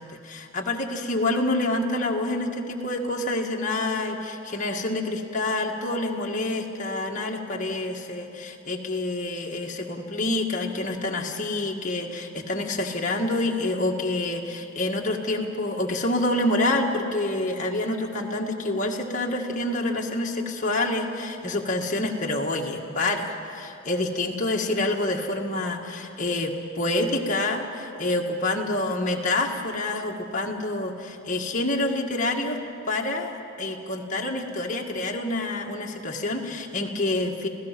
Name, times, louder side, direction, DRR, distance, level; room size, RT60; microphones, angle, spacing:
voice 1, 0.0-32.6 32.9-33.3 33.6-37.5, left 2 dB, 40° left, 0 dB, 1.7 m, -27 dB
27.0 x 16.0 x 6.0 m, 2.7 s
head